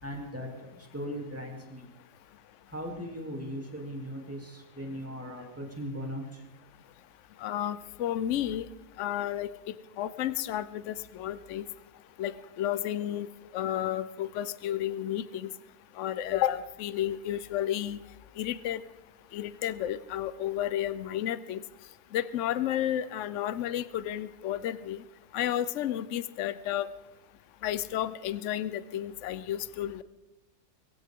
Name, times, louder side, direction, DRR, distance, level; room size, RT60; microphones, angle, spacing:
voice 1, 0.0-1.9 2.7-6.4, equal, 10° right, -1 dB, 3.0 m, -38 dB
voice 2, 7.4-8.7 9.0-11.6 12.2-13.3 13.5-15.5 16.0-18.0 18.4-18.8 19.3-21.6 22.1-25.0 25.3-26.9 27.6-30.0, left 11 dB, 60° left, 15 dB, 0.9 m, -32 dB
22.5 x 16.0 x 3.7 m, 1.1 s
omnidirectional pair, 1.6 m